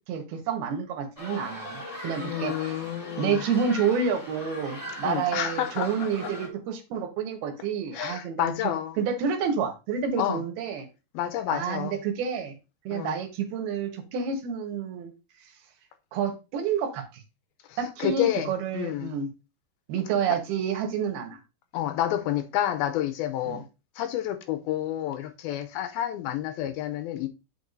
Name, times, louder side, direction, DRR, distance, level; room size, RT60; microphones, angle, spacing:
voice 1, 0.1-2.9 3.2-8.5 9.0-10.9 11.5-12.5 12.8-15.1 16.1-17.2 17.8-19.3 19.9-21.4 23.5-23.6, right 6 dB, 80° right, 3.0 m, -29 dB
sound 1, 1.2-6.5, left 1 dB, 10° left, 1.6 m, -39 dB
voice 2, 2.2-3.4 5.0-6.3 7.9-9.0 10.2-10.4 11.1-11.9 12.9-13.2 17.7-19.1 21.7-23.6 24.0-27.3, left 12 dB, 80° left, 2.4 m, -29 dB
9.1 x 6.6 x 2.6 m
omnidirectional pair, 4.6 m